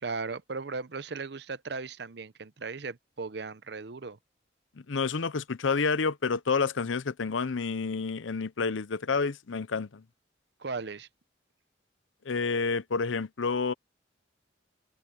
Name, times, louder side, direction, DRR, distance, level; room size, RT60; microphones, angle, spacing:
voice 1, 0.0-4.2 10.6-11.1, right 4 dB, 60° right, 0.7 m, -37 dB
voice 2, 4.9-10.0 12.2-13.7, left 4 dB, 85° left, 0.7 m, -29 dB
head